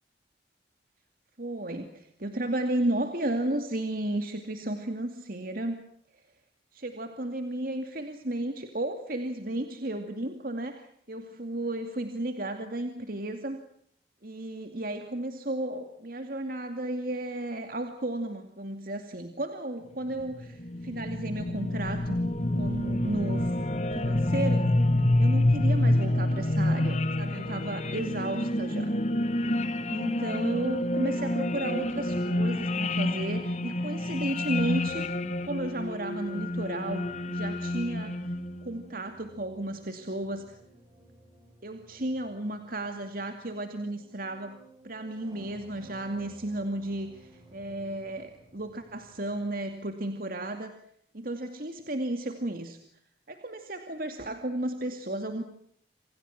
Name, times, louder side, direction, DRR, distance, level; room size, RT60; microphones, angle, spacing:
voice 1, 1.4-5.8 6.1-6.2 6.7-13.6 14.2-22.2 22.5-23.5 23.9-24.7 25.2-28.9 29.8-35.1 35.4-38.3 38.6-40.6 41.6-44.6 44.8-50.8 51.1-52.8 53.3-55.4, right 1 dB, 55° right, 6 dB, 2.4 m, -33 dB
sound 1, 20.2-38.6, left 1 dB, 40° left, 1.6 m, -28 dB
sound 2, 37.0-49.8, right 1 dB, 20° right, 7.8 m, -55 dB
29.0 x 27.0 x 5.9 m, 0.66 s
head